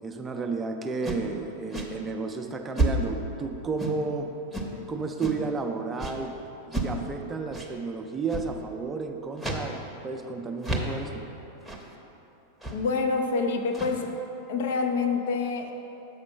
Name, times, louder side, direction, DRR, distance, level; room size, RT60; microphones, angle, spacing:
voice 1, 0.0-4.3 4.9-6.3 6.8-9.8 10.0-11.2, right 4 dB, 20° right, 5 dB, 0.5 m, -32 dB
sound 1, 1.0-1.3 1.7-1.9 2.8-3.2 3.8-4.1 4.5-4.7 5.2-5.5 6.0-6.2 6.7-7.0 7.5-7.7 8.3-8.5 9.4-9.7 10.0-10.1 10.6-11.0 11.6-11.9 12.6-12.9 13.6-14.1, right 1 dB, ahead, 0.9 m, -30 dB
voice 2, 12.7-14.1 14.5-15.7, left 4 dB, 55° left, 4 dB, 0.6 m, -27 dB
7.1 x 5.1 x 5.6 m, 3.0 s
figure-of-eight pair, 90°, 0 cm